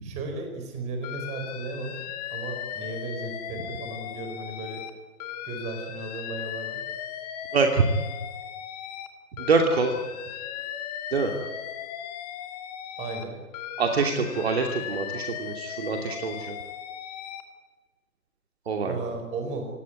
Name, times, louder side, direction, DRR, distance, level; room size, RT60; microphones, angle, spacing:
voice 1, 0.0-2.0 2.3-4.8 5.4-6.8 13.0-13.4 18.8-19.7, right 3 dB, 15° right, 4 dB, 4.8 m, -35 dB
Alarm, 1.0-4.9 5.2-9.1 9.4-13.2 13.5-17.4, left 9 dB, 25° left, 2.2 m, -37 dB
voice 2, 7.5-7.8 9.4-9.9 11.1-11.3 13.8-16.6 18.7-19.1, right 4 dB, 45° right, 3 dB, 2.7 m, -25 dB
27.5 x 17.5 x 9.6 m, 1.3 s
figure-of-eight pair, 140°, 44 cm